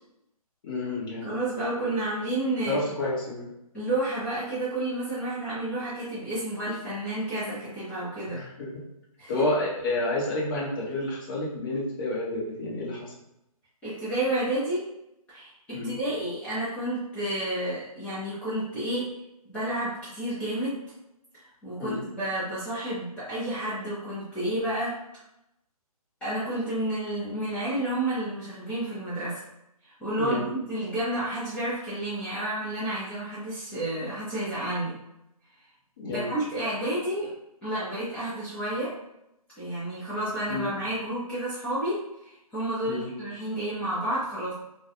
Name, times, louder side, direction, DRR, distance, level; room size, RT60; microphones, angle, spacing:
voice 1, 0.6-1.3 1.8-1.9 2.7-3.5 8.3-8.8 9.3-13.1 15.7-16.0 21.8-22.0 30.1-30.5 36.0-36.3 40.5-40.7 42.8-43.1, left 2 dB, 35° left, -5 dB, 0.8 m, -30 dB
voice 2, 1.2-2.8 3.7-8.4 9.2-9.3 13.8-14.8 15.3-19.1 19.5-20.8 21.6-24.9 26.2-29.4 29.8-35.0 36.0-37.3 37.6-38.9 39.6-44.5, right 1 dB, 5° left, -12 dB, 0.5 m, -30 dB
2.3 x 2.2 x 2.8 m, 0.86 s
figure-of-eight pair, 140°, 19 cm